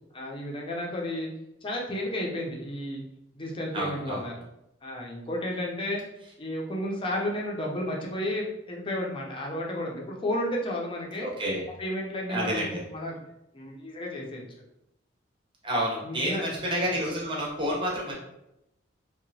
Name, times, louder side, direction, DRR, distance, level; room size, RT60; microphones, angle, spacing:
voice 1, 0.1-1.3 1.6-3.0 3.3-4.3 4.8-6.0 6.4-11.3 11.8-13.2 13.5-14.4 16.0-16.5, left 1 dB, 25° left, -2 dB, 0.5 m, -32 dB
voice 2, 3.7-4.2 11.2-11.7 12.3-12.8 15.6-18.1, equal, 25° right, -4 dB, 0.7 m, -29 dB
2.8 x 2.2 x 2.6 m, 0.85 s
head